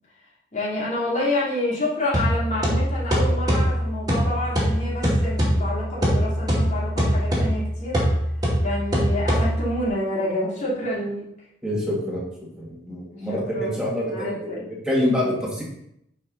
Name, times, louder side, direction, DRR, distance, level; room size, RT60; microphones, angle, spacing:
voice 1, 0.5-8.0 8.6-11.2 13.1-14.6, left 1 dB, 40° left, -7 dB, 3.2 m, -28 dB
sound 1, 2.1-9.9, equal, 20° right, 2.4 m, -23 dB
voice 2, 11.6-12.2 12.6-15.6, left 1 dB, 5° right, -5 dB, 2.4 m, -26 dB
9.5 x 5.6 x 4.2 m, 0.77 s
head